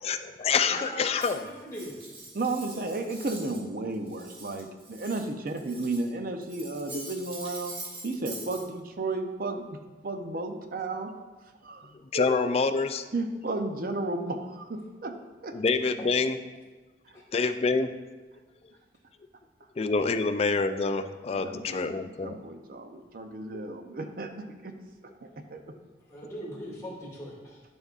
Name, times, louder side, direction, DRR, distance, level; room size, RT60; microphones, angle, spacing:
voice 1, 0.0-1.5 12.1-13.0 15.5-16.4 17.3-17.9 19.8-22.4, left 4 dB, 35° left, 9 dB, 0.3 m, -26 dB
voice 2, 0.7-1.9 16.0-16.1 17.1-17.2 26.1-27.6, equal, 15° left, -6 dB, 2.2 m, -40 dB
Cutlery silverware, 1.2-3.7 3.9-6.1 6.4-8.6, right 2 dB, 30° right, 1.3 m, -44 dB
voice 3, 2.3-7.7 8.0-11.1 11.6-12.3 13.1-15.6 21.3-21.9 22.2-24.7 25.2-25.6, right 2 dB, 55° right, 6 dB, 0.6 m, -33 dB
11.5 x 5.3 x 2.5 m, 1.3 s
head